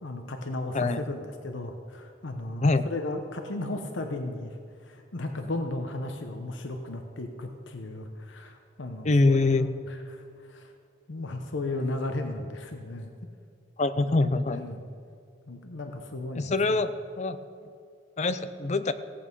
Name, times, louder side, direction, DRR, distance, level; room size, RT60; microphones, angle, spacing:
voice 1, 0.0-4.6 4.8-10.7 11.1-13.1 14.0-14.2 14.5-14.8 15.5-16.8, left 2 dB, 85° left, 5 dB, 1.0 m, -35 dB
voice 2, 0.7-1.0 2.6-2.8 9.0-9.7 13.8-14.6 16.3-16.9 17.2-17.4 18.2-18.9, left 3 dB, 40° left, 12 dB, 0.5 m, -24 dB
16.5 x 8.6 x 5.4 m, 2.4 s
head